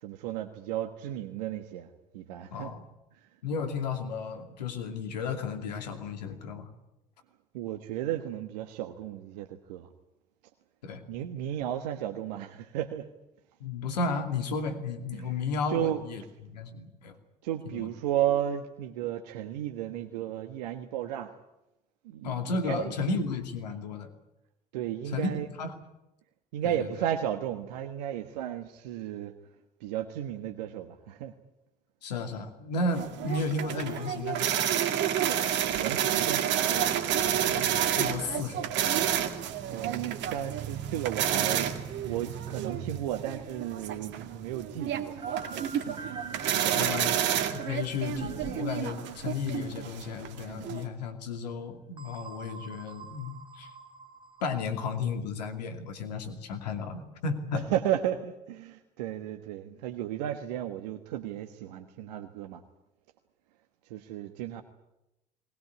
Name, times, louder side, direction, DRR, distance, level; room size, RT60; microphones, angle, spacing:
voice 1, 0.0-1.9 2.1-2.7 3.2-3.3 7.5-9.9 11.1-13.1 15.1-15.3 15.7-16.0 17.4-21.3 22.0-23.0 24.7-25.5 26.5-29.3 29.8-31.3 35.7-36.7 38.0-38.1 39.7-41.7 42.0-46.1 46.5-47.2 57.7-62.6 63.9-64.6, right 11 dB, 75° right, 6 dB, 1.4 m, -34 dB
voice 2, 2.5-2.8 3.4-6.7 10.8-11.0 13.6-17.2 17.6-17.9 22.2-24.1 25.1-25.3 25.6-25.8 26.6-26.9 32.0-34.6 37.5-38.6 46.8-53.7 54.4-57.7, left 4 dB, 85° left, 7 dB, 2.6 m, -33 dB
sound 1, 32.9-50.8, right 10 dB, 60° right, 2.2 m, -30 dB
sound 2, 41.2-50.2 50.5-50.7 52.0-54.7, right 3 dB, 25° right, 2.7 m, -48 dB
20.5 x 19.5 x 9.6 m, 0.91 s
hypercardioid pair, 60°, 21 cm